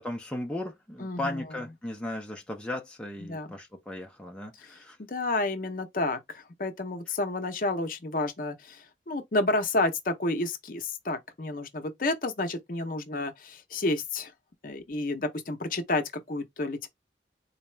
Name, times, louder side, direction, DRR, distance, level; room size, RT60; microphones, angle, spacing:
voice 1, 0.0-5.0, left 1 dB, 5° left, 0.5 m, -36 dB
voice 2, 1.0-1.4 3.2-3.5 5.0-14.3 14.6-16.9, left 2 dB, 50° left, 0.7 m, -30 dB
4.0 x 2.3 x 3.2 m
head